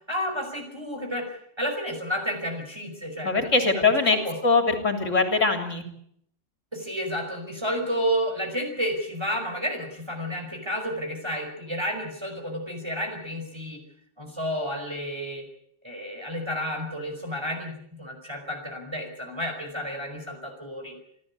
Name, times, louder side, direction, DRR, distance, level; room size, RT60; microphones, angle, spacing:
voice 1, 0.1-3.5 4.1-4.4 6.7-13.8 14.2-15.4 15.8-21.0, equal, 20° right, 3 dB, 5.3 m, -31 dB
voice 2, 3.2-4.2 4.4-5.8, left 3 dB, 75° left, 5 dB, 3.7 m, -22 dB
28.5 x 13.5 x 8.6 m, 0.68 s
omnidirectional pair, 1.3 m